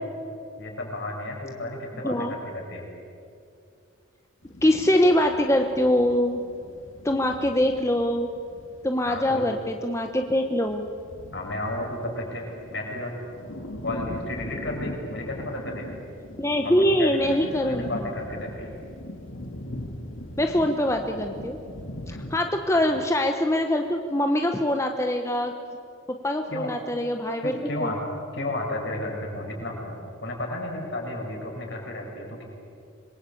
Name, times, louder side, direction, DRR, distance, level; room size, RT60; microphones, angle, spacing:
voice 1, 0.6-2.8 9.1-9.5 11.3-12.5 12.7-13.3 13.8-16.0 16.6-18.7 22.7-22.8 26.5-26.7 27.4-28.0 28.3-29.9 30.2-32.4, left 1 dB, 60° left, -1 dB, 6.7 m, -33 dB
sound 1, 4.4-22.4, left 1 dB, 80° left, 2.4 m, -41 dB
voice 2, 4.6-6.4 7.0-8.3 8.8-10.9 16.4-17.9 20.4-21.6 22.1-25.5 26.2-27.9, left 1 dB, 15° left, 4 dB, 1.0 m, -23 dB
26.0 x 22.0 x 8.6 m, 2.5 s
head